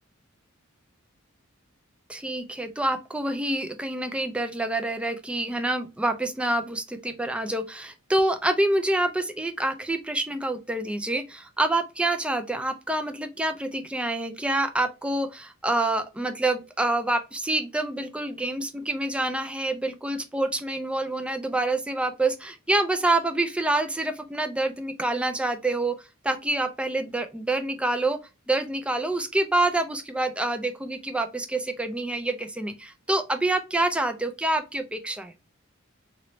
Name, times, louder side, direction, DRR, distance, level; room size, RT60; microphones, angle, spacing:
voice 1, 2.1-26.0 26.2-28.2 28.5-35.3, right 2 dB, 5° right, 0.3 m, -27 dB
3.1 x 3.0 x 2.5 m
head